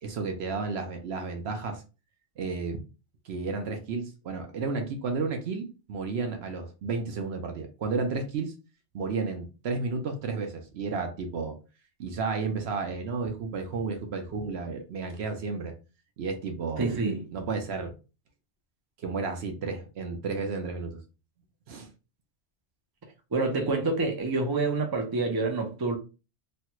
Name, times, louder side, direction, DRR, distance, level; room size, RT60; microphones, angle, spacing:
voice 1, 0.0-1.8 2.4-2.8 3.3-8.5 8.9-11.6 12.0-15.7 16.2-16.9 17.3-17.9 19.0-21.0 21.7-21.9, right 4 dB, 65° right, 0.9 m, -32 dB
voice 2, 16.8-17.3 23.3-26.0, right 3 dB, 30° right, 0.5 m, -27 dB
3.2 x 2.2 x 2.9 m
omnidirectional pair, 1.2 m